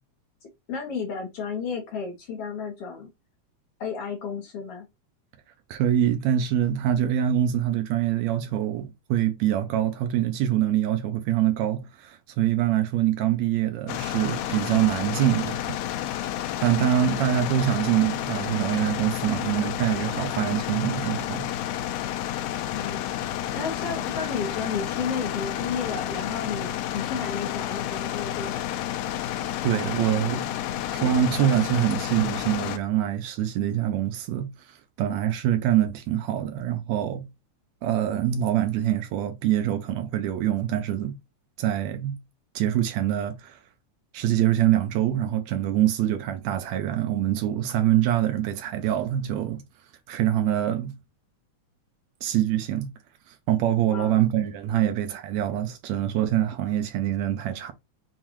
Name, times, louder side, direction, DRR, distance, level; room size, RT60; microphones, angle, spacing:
voice 1, 0.4-3.1 3.8-4.9 22.7-23.2 23.5-28.7 53.9-54.2 54.8-55.0, left 6 dB, 60° left, 1.7 m, -32 dB
voice 2, 5.7-15.8 16.6-21.5 29.6-30.5 30.9-34.5 35.0-37.3 37.8-41.2 41.6-42.2 42.6-43.6 44.1-49.6 50.1-50.9 52.2-52.9 53.5-57.7, right 11 dB, 75° right, 1.8 m, -24 dB
sound 1, 13.9-32.8, left 12 dB, 80° left, 1.9 m, -30 dB
7.2 x 2.4 x 3.0 m
omnidirectional pair, 3.4 m